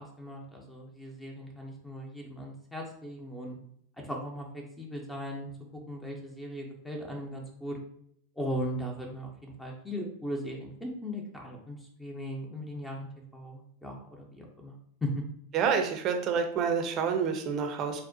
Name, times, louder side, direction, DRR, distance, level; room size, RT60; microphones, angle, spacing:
voice 1, 0.0-3.6 4.0-5.5 5.9-7.8 8.4-14.7 15.0-15.1, equal, 5° left, 0 dB, 0.6 m, -38 dB
voice 2, 15.5-18.0, right 6 dB, 35° right, 4 dB, 0.6 m, -28 dB
4.1 x 2.1 x 2.6 m, 0.69 s
figure-of-eight pair, 90°, 0 cm